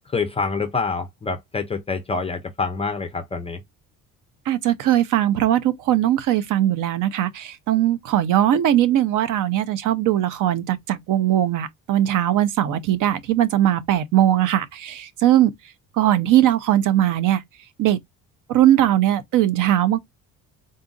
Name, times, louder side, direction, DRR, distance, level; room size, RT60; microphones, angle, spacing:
voice 1, 0.1-3.6, left 4 dB, 20° left, 0.4 m, -26 dB
voice 2, 4.5-15.5 16.0-17.4 17.8-18.0 18.5-20.0, right 12 dB, 65° right, 0.7 m, -20 dB
3.9 x 2.4 x 3.7 m
cardioid pair, 180°, 34 cm